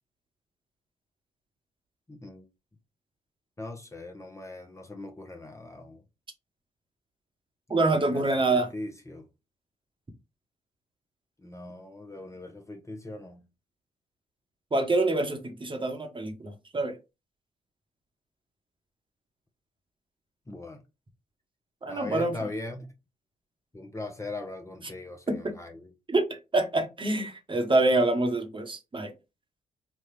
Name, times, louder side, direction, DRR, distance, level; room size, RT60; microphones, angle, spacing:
voice 1, 2.1-2.4 3.6-6.0 8.0-9.3 11.4-13.4 20.5-20.8 21.9-22.9 23.7-25.9, left 2 dB, 15° left, 0.9 m, -40 dB
voice 2, 7.7-8.7 14.7-17.0 21.8-22.3 25.4-25.5 26.1-29.1, right 2 dB, 30° right, 1.1 m, -26 dB
4.1 x 2.4 x 3.2 m
hypercardioid pair, 40°, 17 cm